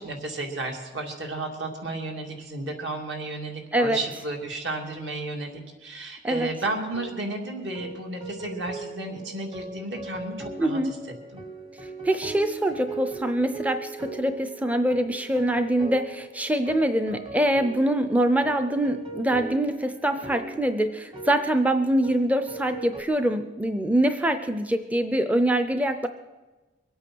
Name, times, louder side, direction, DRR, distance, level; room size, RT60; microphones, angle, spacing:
voice 1, 0.0-11.0 11.3-11.4, right 2 dB, 70° right, 1 dB, 2.7 m, -33 dB
sound 1, 6.9-23.0, right 3 dB, 25° right, 1.2 m, -40 dB
voice 2, 10.6-10.9 11.8-26.1, right 1 dB, 10° right, 9 dB, 0.5 m, -24 dB
22.5 x 8.8 x 6.2 m, 1.2 s
head